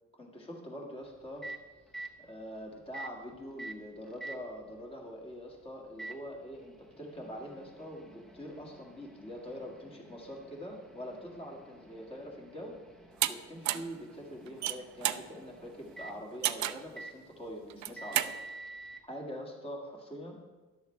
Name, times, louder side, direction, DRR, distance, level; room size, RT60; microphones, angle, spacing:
voice 1, 0.1-1.5 2.2-12.8 13.3-18.4 19.1-20.4, equal, 20° left, -1 dB, 2.0 m, -44 dB
Microwave oven, 1.0-19.0, right 2 dB, ahead, 0.8 m, -50 dB
sound 1, 13.2-13.3 13.7-13.9 14.5-15.3 16.4-16.9 17.7-18.3, right 13 dB, 65° right, 0.5 m, -31 dB
12.5 x 11.5 x 3.3 m, 1.2 s
cardioid pair, 165°, 30 cm